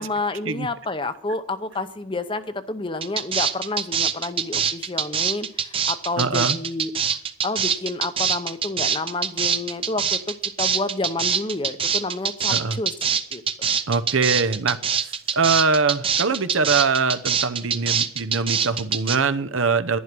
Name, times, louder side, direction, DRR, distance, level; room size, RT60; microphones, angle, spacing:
voice 1, 0.0-7.2 7.4-12.9 13.3-13.4, left 2 dB, 25° left, 11 dB, 0.7 m, -29 dB
sound 1, 3.0-19.2, right 7 dB, 25° right, 0.7 m, -24 dB
voice 2, 6.2-6.6 12.5-12.8 13.9-14.8 15.4-20.0, right 4 dB, 75° right, 11 dB, 0.8 m, -22 dB
11.0 x 11.0 x 6.1 m, 0.67 s
head